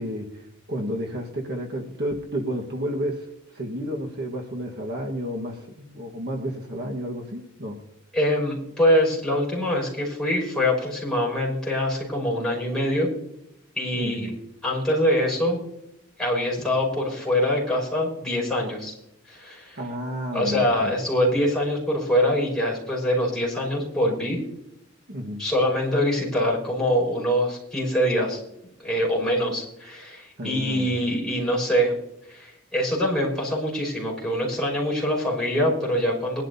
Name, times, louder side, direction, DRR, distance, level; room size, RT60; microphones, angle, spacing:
voice 1, 0.0-3.3 3.5-7.8 13.9-14.4 19.4-19.5 19.8-20.9 25.1-25.5 30.4-30.9, equal, 50° right, 0 dB, 1.4 m, -31 dB
voice 2, 8.1-13.1 13.8-14.3 14.6-15.6 16.2-18.9 19.3-19.8 20.3-24.4 25.4-28.4 28.8-32.0 32.3-36.4, equal, 5° left, -4 dB, 5.7 m, -24 dB
22.0 x 12.0 x 2.7 m, 0.84 s
head